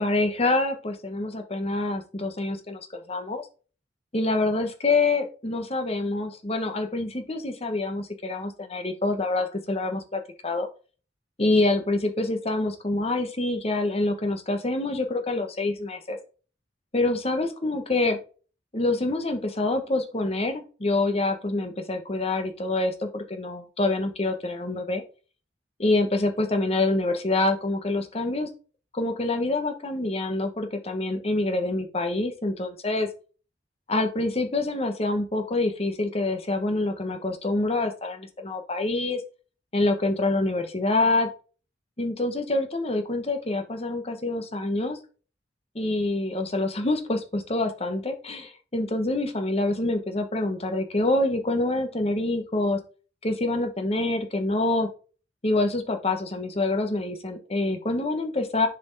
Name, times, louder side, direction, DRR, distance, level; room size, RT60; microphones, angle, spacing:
voice 1, 0.0-3.4 4.1-10.7 11.4-16.2 16.9-18.2 18.7-25.0 25.8-28.5 28.9-33.1 33.9-39.2 39.7-41.3 42.0-45.0 45.7-52.8 53.2-54.9 55.4-58.7, left 2 dB, 35° left, 6 dB, 1.1 m, -26 dB
6.9 x 4.4 x 4.1 m, 0.35 s
head